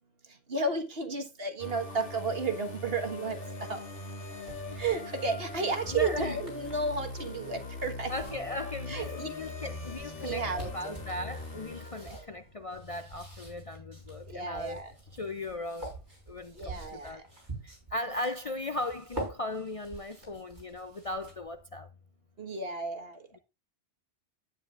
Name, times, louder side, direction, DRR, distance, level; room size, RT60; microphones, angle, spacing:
voice 1, 0.3-3.8 4.7-8.1 8.9-9.3 10.2-11.0 12.0-12.2 14.3-14.9 16.5-17.2 22.4-23.2, right 3 dB, 60° right, 1.9 m, -33 dB
sound 1, 1.6-12.4, left 2 dB, 90° left, 2.3 m, -41 dB
sound 2, 3.9-21.6, right 2 dB, 45° right, 6.6 m, -47 dB
voice 2, 5.9-6.4 8.1-14.8 15.1-15.9 16.3-17.2 17.6-21.9, left 2 dB, 40° left, 0.6 m, -37 dB
11.5 x 9.8 x 2.5 m
omnidirectional pair, 1.1 m